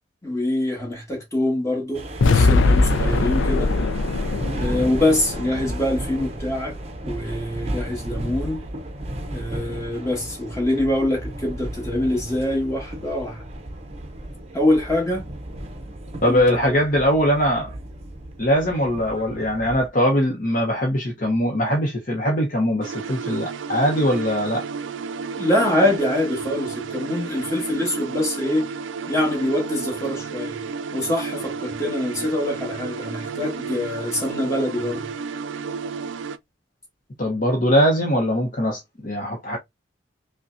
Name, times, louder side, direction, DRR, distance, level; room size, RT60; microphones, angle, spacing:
voice 1, 0.2-3.8 4.6-6.8 7.0-8.6 9.3-13.4 14.5-15.2 16.3-16.4 16.7-16.8 25.4-28.7 29.1-30.6 30.9-35.1, left 1 dB, 15° left, 1.5 m, -24 dB
sound 1, 1.9-19.9, right 1 dB, 35° right, 0.6 m, -33 dB
sound 2, 2.2-6.4, left 3 dB, 85° left, 0.4 m, -21 dB
voice 2, 16.2-17.8 18.4-24.6 37.2-39.6, equal, 45° left, 0.8 m, -21 dB
sound 3, 22.8-36.4, right 5 dB, 80° right, 0.4 m, -32 dB
5.2 x 2.2 x 2.5 m
head